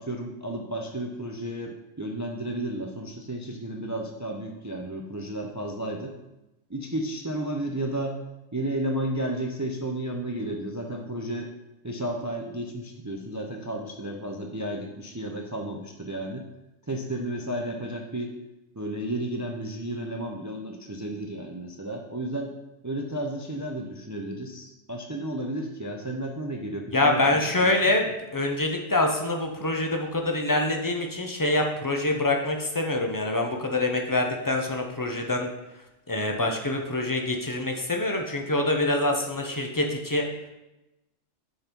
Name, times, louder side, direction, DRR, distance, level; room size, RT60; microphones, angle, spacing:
voice 1, 0.0-6.2 6.7-8.2 8.5-11.5 11.8-16.5 16.9-18.3 18.8-22.5 22.8-27.9, right 1 dB, 30° right, 1 dB, 0.3 m, -32 dB
voice 2, 26.9-35.5 36.1-40.2, left 2 dB, 20° left, 2 dB, 0.5 m, -25 dB
7.1 x 4.0 x 5.2 m, 0.97 s
omnidirectional pair, 1.4 m